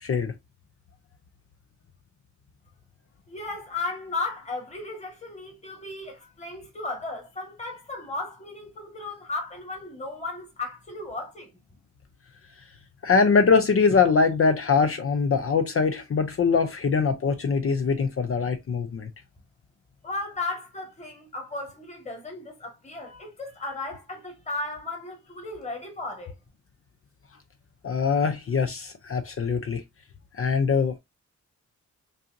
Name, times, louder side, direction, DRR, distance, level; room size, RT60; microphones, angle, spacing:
voice 1, 0.0-0.3 13.0-19.1 27.8-29.8 30.3-31.0, left 5 dB, 45° left, 0.5 m, -23 dB
voice 2, 3.3-11.5 20.0-26.3, left 2 dB, 20° left, 1.6 m, -35 dB
5.4 x 2.6 x 2.5 m
wide cardioid pair, 105°, 31 cm